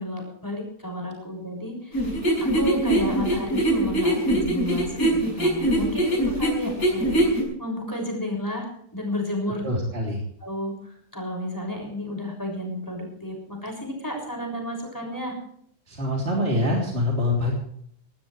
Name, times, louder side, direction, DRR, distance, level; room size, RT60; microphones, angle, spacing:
voice 1, 0.0-2.1 2.4-9.7 10.4-15.3, left 1 dB, 15° left, 1 dB, 6.5 m, -32 dB
sound 1, 1.9-7.4, right 1 dB, 75° left, 6.0 m, -22 dB
voice 2, 9.6-10.2 15.9-17.5, left 1 dB, 40° right, -2 dB, 3.7 m, -24 dB
18.5 x 18.0 x 3.3 m, 0.66 s
omnidirectional pair, 1.6 m